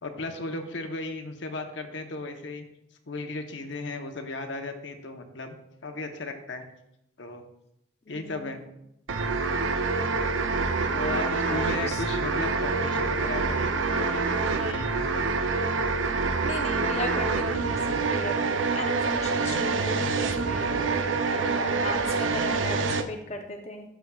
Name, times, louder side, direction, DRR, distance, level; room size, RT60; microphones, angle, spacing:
voice 1, 0.0-2.7 3.1-5.6 5.8-6.6 7.2-7.4 8.1-8.6 10.9-15.3, left 2 dB, 75° left, 5 dB, 0.9 m, -36 dB
voice 2, 8.1-8.6 11.4-12.0 16.4-18.4 18.7-23.9, left 1 dB, 35° left, 3 dB, 0.6 m, -36 dB
sound 1, 9.1-23.0, right 4 dB, 85° right, 0.6 m, -26 dB
12.5 x 6.2 x 2.3 m, 0.82 s
head